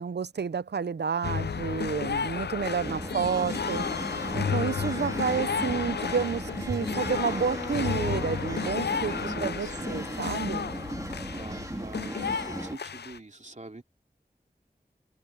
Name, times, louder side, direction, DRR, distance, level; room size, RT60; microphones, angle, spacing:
voice 1, 0.0-3.9 4.3-10.7, right 6 dB, 85° right, 0.5 m, -30 dB
sound 1, 1.2-13.2, left 6 dB, 80° left, 0.4 m, -33 dB
sound 2, 2.8-12.8, right 1 dB, 20° right, 2.4 m, -36 dB
sound 3, 4.4-4.5 5.0-5.1 5.4-6.2 6.6-8.9 9.1-9.2, right 2 dB, 70° right, 3.8 m, -42 dB
voice 2, 9.3-10.1 11.3-13.8, right 2 dB, 45° right, 2.7 m, -44 dB
wide cardioid pair, 55°, 17 cm